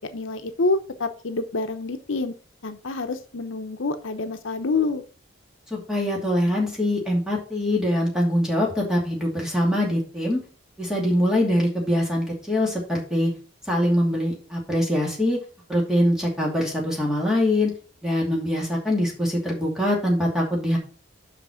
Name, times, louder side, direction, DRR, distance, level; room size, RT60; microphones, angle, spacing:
voice 1, 0.1-2.3 2.6-5.0, left 3 dB, 80° left, 8 dB, 0.8 m, -27 dB
voice 2, 5.7-10.4 10.8-13.3 13.7-15.4 15.7-17.7 18.0-20.8, left 1 dB, 5° right, -2 dB, 2.5 m, -23 dB
5.9 x 5.8 x 5.8 m, 0.41 s
head